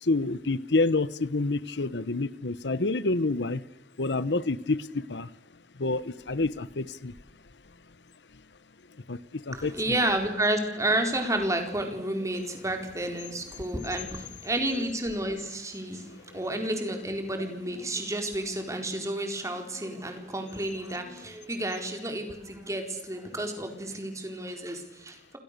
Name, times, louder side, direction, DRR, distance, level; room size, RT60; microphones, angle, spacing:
voice 1, 0.0-3.6 4.0-5.3 5.8-7.1 9.1-10.0 16.1-16.2, left 3 dB, 90° left, 17 dB, 1.1 m, -28 dB
voice 2, 9.5-25.4, right 1 dB, 20° right, 5 dB, 4.3 m, -31 dB
29.0 x 28.5 x 6.8 m, 0.87 s
head